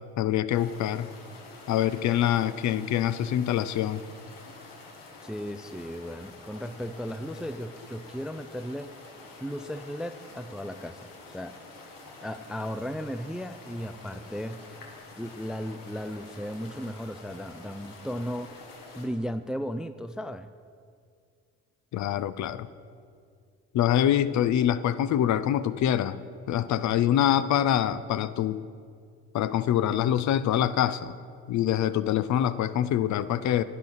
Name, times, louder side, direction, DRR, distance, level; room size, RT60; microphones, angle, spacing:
voice 1, 0.2-1.1 1.7-4.0 21.9-22.7 23.7-26.2 26.5-28.6 29.3-31.1 31.5-33.6, left 11 dB, 55° left, 15 dB, 0.5 m, -25 dB
sound 1, 0.5-19.1, left 3 dB, 70° left, 1.7 m, -48 dB
voice 2, 5.2-8.9 9.4-11.6 12.2-14.6 15.1-18.5 19.0-20.5, equal, ahead, 11 dB, 0.3 m, -35 dB
10.0 x 9.2 x 4.0 m, 2.2 s
hypercardioid pair, 55°, 34 cm